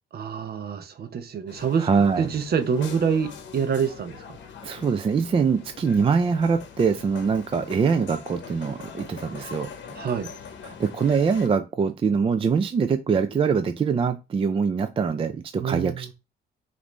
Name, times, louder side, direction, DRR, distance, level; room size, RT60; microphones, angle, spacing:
voice 1, 0.1-1.9 2.2-4.2 9.9-10.3 15.6-16.1, right 6 dB, 50° right, 0.7 m, -26 dB
sound 1, 1.5-11.5, left 6 dB, 65° left, 0.8 m, -42 dB
voice 2, 1.8-2.3 4.6-9.7 10.6-16.1, right 5 dB, 30° right, 0.4 m, -23 dB
5.1 x 2.7 x 3.0 m
cardioid pair, 90°, 20 cm